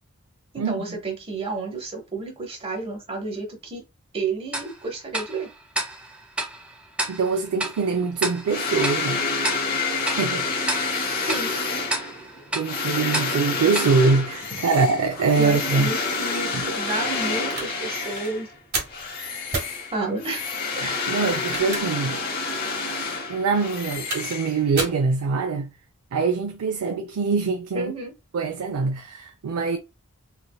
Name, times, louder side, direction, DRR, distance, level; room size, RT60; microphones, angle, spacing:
voice 1, 0.5-3.8 4.1-5.5 11.2-11.5 15.4-18.5 19.9-20.4 27.7-28.1, right 3 dB, 25° right, 1.0 m, -30 dB
Tick-tock, 4.5-15.0, right 1 dB, 5° right, 0.4 m, -33 dB
voice 2, 7.1-9.2 9.9-10.5 10.8-11.3 12.5-15.9 16.5-16.6 20.8-22.2 23.3-25.7 26.1-27.9 28.3-29.8, right 4 dB, 85° right, 0.4 m, -24 dB
sound 1, 8.5-18.5 18.9-24.9, left 4 dB, 45° left, 0.8 m, -28 dB
sound 2, 17.1-17.7 18.1-18.3 18.7-19.0 19.5-19.7 21.3-22.1 22.5-22.6 23.7-24.4 24.8-25.0, right 3 dB, 45° right, 1.5 m, -31 dB
3.3 x 2.7 x 2.2 m
head